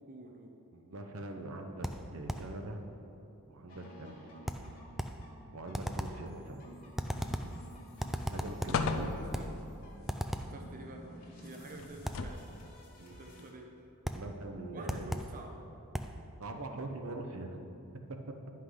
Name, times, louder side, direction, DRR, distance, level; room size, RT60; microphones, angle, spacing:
voice 1, 0.1-0.6 8.6-9.5 10.4-12.4 13.1-13.7 14.7-15.6, right 2 dB, 40° right, 2 dB, 0.6 m, -49 dB
voice 2, 0.7-2.8 3.5-4.7 5.5-6.6 8.3-9.1 13.0-13.3 14.1-15.1 16.4-17.6, right 2 dB, 70° right, 4 dB, 0.8 m, -43 dB
sound 1, 1.8-2.6 4.5-5.3 5.7-6.3 7.0-7.6 8.0-8.9 9.3-9.6 10.1-10.6 12.0-12.3 14.0-14.3 14.9-15.4 15.9-16.2, equal, ahead, 0.3 m, -37 dB
sound 2, 3.7-13.5, equal, 40° left, 1.8 m, -53 dB
sound 3, 7.1-7.7 8.1-8.2 8.7-9.7 11.8-12.6 13.4-13.5, left 4 dB, 65° left, 0.5 m, -35 dB
9.8 x 5.8 x 5.0 m, 2.9 s
head